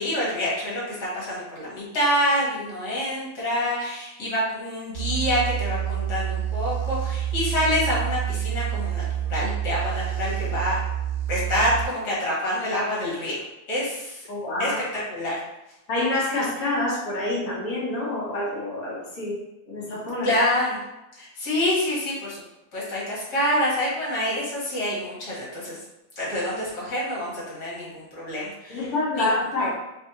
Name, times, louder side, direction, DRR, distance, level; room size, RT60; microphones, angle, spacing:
voice 1, 0.0-9.0 9.3-10.7 11.3-13.4 13.7-14.3 14.6-15.4 20.2-20.8 21.2-22.4 22.7-25.8 26.2-29.3 29.6-29.7, left 1 dB, 50° left, -7 dB, 1.3 m, -27 dB
sound 1, 4.9-11.8, right 10 dB, 75° right, 1.4 m, -28 dB
voice 2, 14.3-14.8 15.9-19.4 19.7-20.3 28.7-29.7, left 2 dB, 85° left, -7 dB, 0.8 m, -27 dB
4.2 x 3.3 x 2.9 m, 0.93 s
omnidirectional pair, 3.4 m